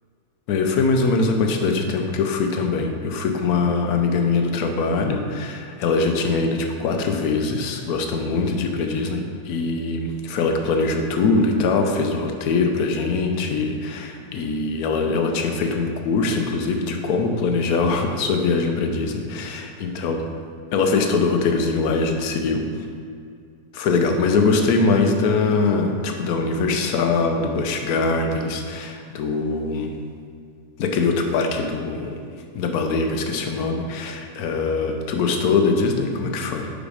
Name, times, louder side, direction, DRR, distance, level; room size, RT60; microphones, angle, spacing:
voice 1, 0.5-20.3 20.7-22.7 23.7-29.9 30.8-32.2 32.5-36.7, left 4 dB, 70° left, 4 dB, 1.0 m, -22 dB
5.2 x 4.9 x 4.9 m, 2.2 s
omnidirectional pair, 1.8 m